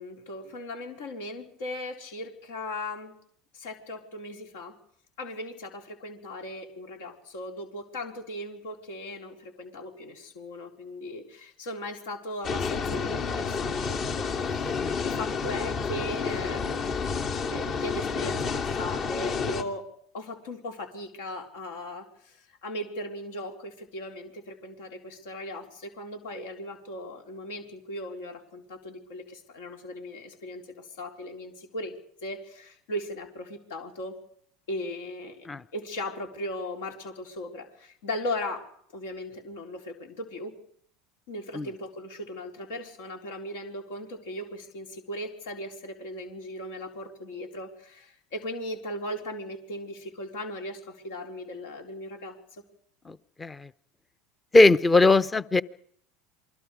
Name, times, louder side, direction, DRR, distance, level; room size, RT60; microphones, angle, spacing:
voice 1, 0.0-3.1 3.5-4.8 5.2-17.0 17.4-19.8 20.1-31.9 32.2-34.2 34.7-35.4 35.7-38.6 38.9-40.5 41.3-52.6, left 1 dB, 75° left, 3 dB, 4.3 m, -38 dB
sound 1, 12.4-19.6, left 5 dB, 50° left, 2.7 m, -30 dB
voice 2, 53.0-53.7 54.5-55.6, left 2 dB, 20° left, 17 dB, 0.9 m, -20 dB
28.0 x 21.0 x 5.1 m, 0.63 s
hypercardioid pair, 80°, 0 cm